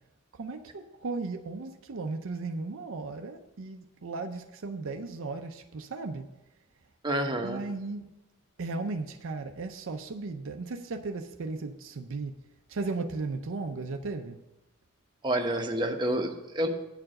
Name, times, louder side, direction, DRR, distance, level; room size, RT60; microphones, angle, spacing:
voice 1, 0.3-6.3 7.4-8.1 8.6-12.4 12.7-14.4, right 3 dB, 65° right, 0.5 m, -36 dB
voice 2, 7.0-7.6 15.2-16.7, right 1 dB, 20° right, 0.9 m, -28 dB
8.7 x 4.6 x 7.5 m
head